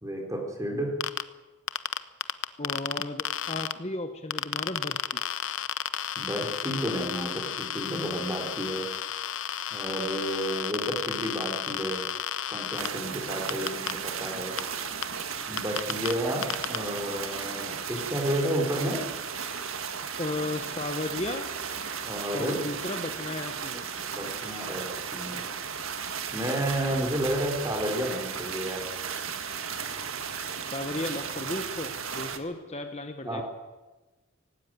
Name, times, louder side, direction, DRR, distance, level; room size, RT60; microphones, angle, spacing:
voice 1, 0.0-0.9 6.2-8.9 9.7-12.0 12.5-14.5 15.5-19.0 22.0-22.6 24.1-25.4 26.3-28.8 33.2-33.4, right 1 dB, 15° right, 1 dB, 4.2 m, -31 dB
sound 1, 1.0-1.2 1.7-3.7 4.3-12.9 13.5-13.9 14.6-14.7 15.0-15.1 15.6-16.1 16.4-16.8, left 9 dB, 70° left, 0.8 m, -32 dB
voice 2, 2.6-5.2 20.2-21.5 22.3-23.8 30.7-33.4, left 2 dB, 30° left, 7 dB, 1.0 m, -34 dB
sound 2, 12.8-32.4, right 6 dB, 80° right, 1.7 m, -35 dB
18.5 x 16.0 x 9.2 m, 1.2 s
head